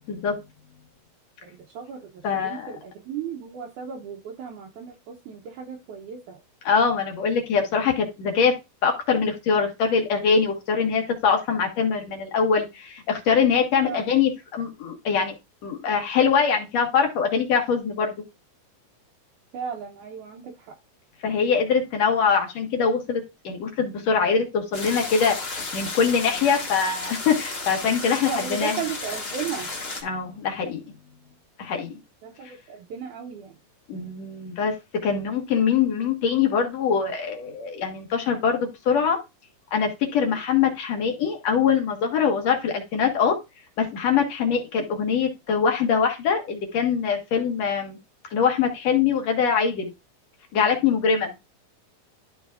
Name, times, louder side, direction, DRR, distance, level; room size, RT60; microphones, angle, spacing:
voice 1, 1.4-6.4 13.8-14.1 19.5-20.7 28.2-29.7 32.2-33.6, right 7 dB, 75° right, 1 dB, 2.0 m, -35 dB
voice 2, 2.2-2.7 6.6-8.5 8.8-15.3 15.6-18.1 21.2-28.8 30.0-30.8 31.6-32.0 33.9-34.8 35.0-39.2 39.7-43.4 43.8-48.0 48.3-49.9 50.5-51.3, left 6 dB, 55° left, 3 dB, 2.3 m, -23 dB
sound 1, 24.7-30.0, left 3 dB, 90° left, 0.5 m, -33 dB
12.5 x 5.0 x 2.4 m, 0.24 s
omnidirectional pair, 4.1 m